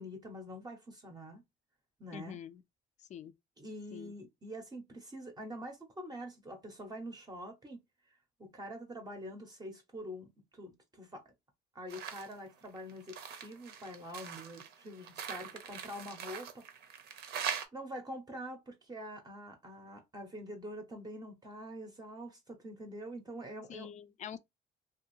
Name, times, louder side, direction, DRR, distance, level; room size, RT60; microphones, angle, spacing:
voice 1, 0.0-1.4 2.0-2.4 3.6-11.3 11.7-16.7 17.7-23.9, equal, 25° right, 0.7 m, -45 dB
voice 2, 2.1-2.6 3.0-3.3 3.9-4.1 23.7-24.4, left 8 dB, 45° left, 0.4 m, -45 dB
sound 1, 11.9-12.3 12.7-17.7, right 8 dB, 75° right, 0.7 m, -42 dB
2.6 x 2.3 x 3.0 m
cardioid pair, 110°, 17 cm